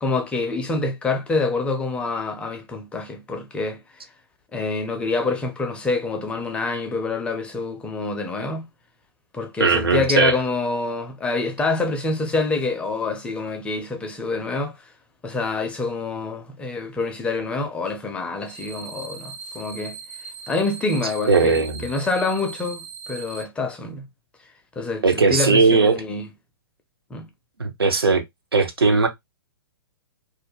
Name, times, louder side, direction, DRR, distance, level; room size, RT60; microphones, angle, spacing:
voice 1, 0.0-3.8 4.5-8.7 9.3-14.7 15.2-20.0 20.5-22.8 23.1-24.0 24.8-26.2 27.1-27.3, left 3 dB, 10° left, 0.4 m, -26 dB
voice 2, 9.6-10.4 21.3-21.8 25.0-26.0 27.6-28.2 28.5-29.1, right 4 dB, 75° right, 0.7 m, -18 dB
sound 1, 18.5-23.4, right 5 dB, 40° right, 0.7 m, -39 dB
2.4 x 2.1 x 3.1 m
figure-of-eight pair, 115°, 13 cm